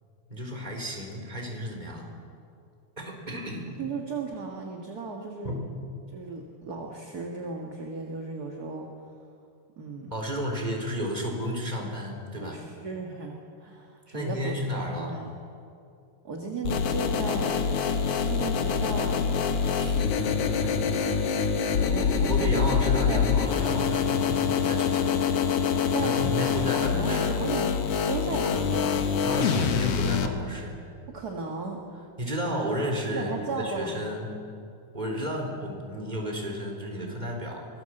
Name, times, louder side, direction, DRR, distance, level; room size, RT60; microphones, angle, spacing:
voice 1, 0.3-2.1 3.0-3.7 5.4-5.6 10.1-12.6 14.1-15.2 19.7-20.0 20.6-20.7 22.3-25.2 26.0-27.3 29.2-30.8 32.2-34.3 34.9-37.7, equal, 15° right, 1 dB, 3.9 m, -32 dB
voice 2, 3.8-5.6 6.1-9.1 9.8-10.1 12.4-15.3 16.2-17.6 18.2-19.3 21.9-22.7 23.1-23.3 23.6-23.8 25.9-29.6 31.1-31.8 33.1-34.1, right 4 dB, 35° right, 0 dB, 1.8 m, -36 dB
sound 1, 16.6-30.3, left 6 dB, 60° left, 2.1 m, -25 dB
24.0 x 19.5 x 7.9 m, 2.5 s
omnidirectional pair, 3.6 m